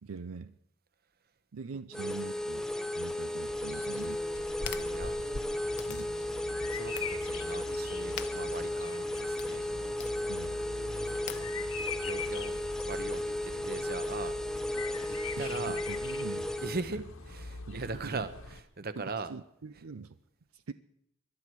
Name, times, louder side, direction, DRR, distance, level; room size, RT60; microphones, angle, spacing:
voice 1, 0.0-0.5 1.5-4.2 5.9-6.1 10.3-10.6 12.5-12.6 14.7-14.8 15.4-16.5 17.7-18.3 19.0-20.2 20.5-20.7, right 4 dB, 80° right, 12 dB, 0.6 m, -43 dB
sound 1, 1.9-16.8, left 1 dB, 5° left, 0.7 m, -35 dB
Bird vocalization bird call bird song, 3.5-18.6, left 3 dB, 80° left, 1.8 m, -43 dB
sound 2, 3.9-12.9, left 9 dB, 55° left, 0.9 m, -49 dB
voice 2, 4.6-5.1 6.7-9.7 11.1-11.5 12.0-14.8 15.4-15.8 16.6-17.0 17.3-19.3, right 3 dB, 50° right, 12 dB, 1.1 m, -40 dB
21.5 x 12.0 x 4.7 m, 0.76 s
head